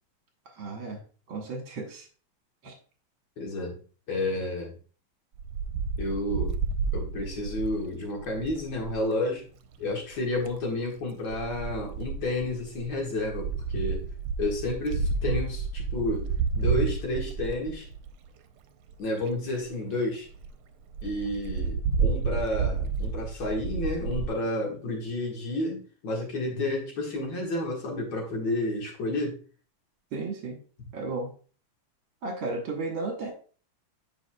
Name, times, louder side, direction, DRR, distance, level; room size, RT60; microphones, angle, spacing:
voice 1, 0.5-1.0 1.3-2.1 2.6-2.7 30.1-30.6 30.9-31.3 32.2-33.3, right 3 dB, 70° right, 1 dB, 2.1 m, -34 dB
voice 2, 3.4-3.8 4.1-4.7 6.0-6.6 6.9-9.5 9.8-14.1 14.4-16.3 16.5-17.9 19.0-20.3 21.0-29.4, left 2 dB, 60° left, -1 dB, 2.3 m, -31 dB
Wind, 5.4-9.0 10.1-10.6 11.3-18.3 18.9-19.0 19.2-19.3 19.6-19.7 20.0-20.1 20.3-20.5 20.9-24.3, right 5 dB, 90° right, 1.5 m, -30 dB
7.8 x 5.4 x 2.2 m, 0.39 s
omnidirectional pair, 2.3 m